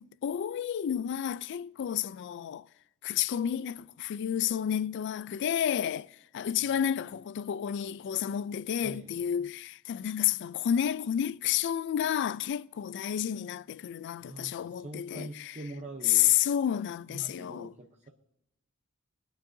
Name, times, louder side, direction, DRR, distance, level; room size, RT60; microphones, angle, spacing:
voice 1, 0.0-2.7 3.0-15.6 16.0-17.7, left 10 dB, 55° left, 0.3 m, -30 dB
voice 2, 14.2-16.4 17.1-18.1, right 2 dB, 35° right, 0.7 m, -44 dB
20.5 x 8.9 x 2.7 m
head